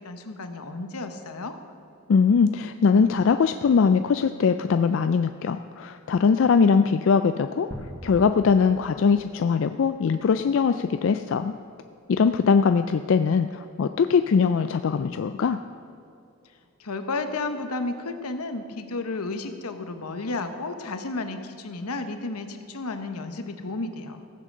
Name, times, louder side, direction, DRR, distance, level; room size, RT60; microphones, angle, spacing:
voice 1, 0.0-1.5 16.8-24.2, left 3 dB, 85° left, 7 dB, 1.0 m, -32 dB
voice 2, 2.1-7.7 8.0-11.5 12.1-15.6, left 5 dB, 60° left, 9 dB, 0.3 m, -21 dB
sound 1, 7.7-9.7, equal, 10° left, 1.4 m, -41 dB
15.5 x 7.6 x 6.6 m, 2.6 s
head